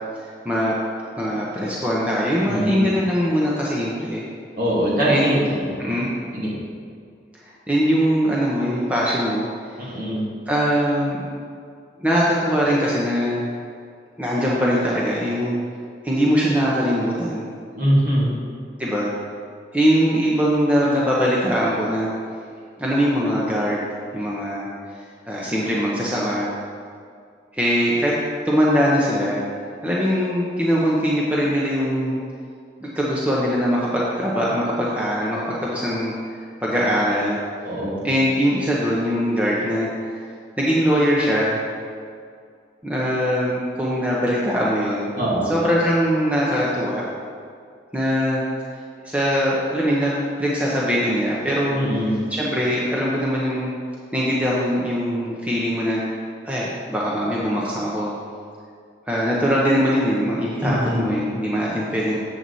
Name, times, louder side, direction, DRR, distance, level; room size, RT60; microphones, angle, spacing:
voice 1, 1.2-4.2 5.1-5.3 5.8-6.1 7.5-9.5 9.8-9.9 10.5-11.2 12.0-13.4 14.2-15.5 16.0-17.4 18.8-19.1 19.7-22.1 22.8-24.7 24.9-26.5 27.5-28.1 28.4-29.4 29.8-32.2 32.8-36.1 36.6-37.4 38.0-40.2 40.6-41.6 42.8-45.1 45.5-47.1 47.9-48.4 49.0-50.1 50.4-51.8 52.3-53.7 54.1-56.0 56.4-58.1 59.1-62.2, equal, 10° right, -6 dB, 0.9 m, -21 dB
voice 2, 2.4-2.9 4.6-5.7 6.3-6.5 9.8-10.3 17.8-18.3 37.6-38.0 45.2-45.5 51.7-52.2 60.6-61.1, equal, 50° right, -7 dB, 2.3 m, -22 dB
7.9 x 7.6 x 4.1 m, 2.2 s
head